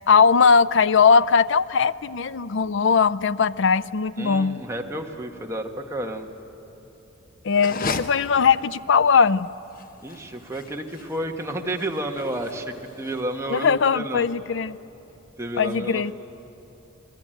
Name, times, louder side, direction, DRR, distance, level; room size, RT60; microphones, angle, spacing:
voice 1, 0.1-4.6 7.4-9.5 13.5-14.8 15.6-16.1, left 5 dB, 60° left, 16 dB, 0.5 m, -19 dB
voice 2, 4.2-6.3 10.0-14.3 15.4-16.1, right 1 dB, 15° right, 2 dB, 1.4 m, -31 dB
sound 1, 7.5-13.6, left 4 dB, 45° left, 0.9 m, -36 dB
28.0 x 20.0 x 9.0 m, 3.0 s
head